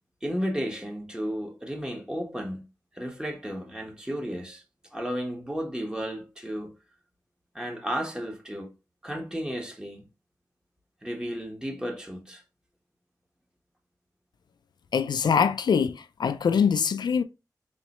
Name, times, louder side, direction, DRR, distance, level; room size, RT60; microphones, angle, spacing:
voice 1, 0.2-2.6 2.9-4.6 4.9-6.7 7.5-8.7 9.0-10.0 11.0-12.4, equal, 10° right, 1.2 m, -33 dB
voice 2, 14.9-17.2, left 6 dB, 85° left, 0.3 m, -23 dB
3.8 x 3.0 x 3.0 m
cardioid pair, 60°, 7 cm